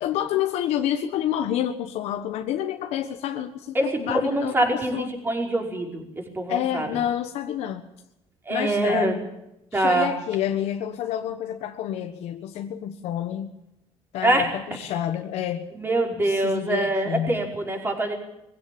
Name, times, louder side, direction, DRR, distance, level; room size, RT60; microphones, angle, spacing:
voice 1, 0.0-5.1 6.5-7.9 8.5-9.3 9.7-13.5 14.1-15.7 16.2-17.5, left 11 dB, 85° left, 5 dB, 1.4 m, -28 dB
voice 2, 3.7-6.9 8.5-9.2 9.7-10.1 14.2-14.5 15.8-18.1, right 2 dB, 20° right, 2 dB, 5.2 m, -24 dB
22.0 x 16.0 x 8.8 m, 0.87 s
cardioid pair, 120°, 11 cm